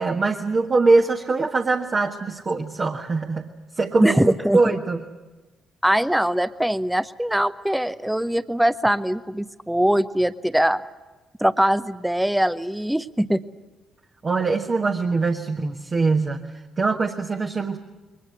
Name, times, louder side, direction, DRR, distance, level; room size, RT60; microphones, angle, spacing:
voice 1, 0.0-3.5 3.7-4.2 4.5-5.0 14.2-16.4 16.8-17.8, right 3 dB, 35° right, 3 dB, 1.4 m, -22 dB
voice 2, 4.0-4.7 5.8-10.8 11.4-13.4, equal, 5° right, 15 dB, 0.8 m, -22 dB
22.5 x 19.5 x 9.5 m, 1.2 s
figure-of-eight pair, 40°, 0 cm